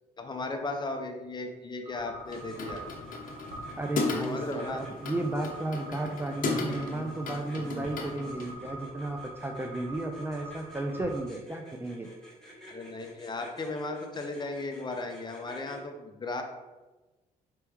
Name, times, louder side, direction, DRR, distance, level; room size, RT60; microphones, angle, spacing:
voice 1, 0.2-2.8 4.2-4.8 12.7-16.4, left 2 dB, 30° left, 4 dB, 0.6 m, -36 dB
sound 1, 1.8-11.2, right 2 dB, 75° right, 1.2 m, -45 dB
sound 2, 2.2-8.5, left 4 dB, 55° left, 0.8 m, -36 dB
sound 3, 2.2-15.8, equal, 5° left, 1.3 m, -52 dB
voice 2, 3.8-12.1, right 2 dB, 15° right, 3 dB, 0.4 m, -34 dB
4.4 x 3.0 x 3.5 m, 1.2 s
cardioid pair, 80°, 16 cm